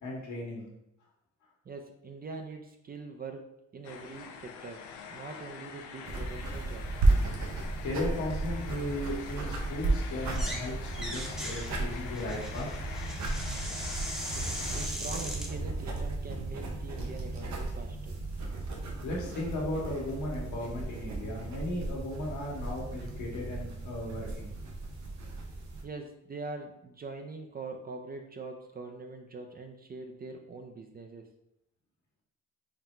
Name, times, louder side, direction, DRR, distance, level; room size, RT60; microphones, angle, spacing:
voice 1, 0.0-0.7 7.8-12.7 19.0-24.5, left 1 dB, 70° left, -2 dB, 1.3 m, -36 dB
voice 2, 1.7-7.1 14.7-18.2 25.8-31.3, right 3 dB, 30° right, 4 dB, 0.4 m, -43 dB
sound 1, 3.8-14.9, left 6 dB, 85° left, 0.5 m, -45 dB
sound 2, 6.1-25.8, right 2 dB, 65° right, 0.8 m, -34 dB
sound 3, 10.2-10.7 10.9-15.5, equal, ahead, 0.8 m, -39 dB
3.9 x 2.1 x 4.3 m, 0.82 s
cardioid pair, 90°, 30 cm